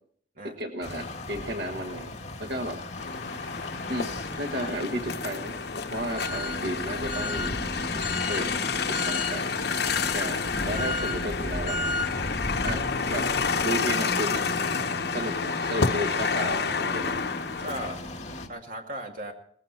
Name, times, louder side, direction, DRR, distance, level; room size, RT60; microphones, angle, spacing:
voice 1, 0.4-2.1 2.4-2.8 3.9-4.1 4.3-5.5 5.9-7.7 8.3-8.6 8.9-9.4 10.1-11.8 12.6-12.8 13.1-13.3 13.6-14.4 15.1-17.2, right 1 dB, 75° right, 4 dB, 1.4 m, -33 dB
sound 1, 0.8-18.5, left 2 dB, 40° left, 2.4 m, -35 dB
sound 2, 3.0-17.9, left 5 dB, 65° left, 1.0 m, -29 dB
sound 3, 7.9-13.4, equal, 15° right, 1.9 m, -51 dB
voice 2, 12.7-13.3 15.1-15.3 17.6-18.0 18.5-19.3, right 1 dB, 50° right, 3 dB, 2.5 m, -38 dB
19.5 x 15.5 x 4.3 m, 0.63 s
head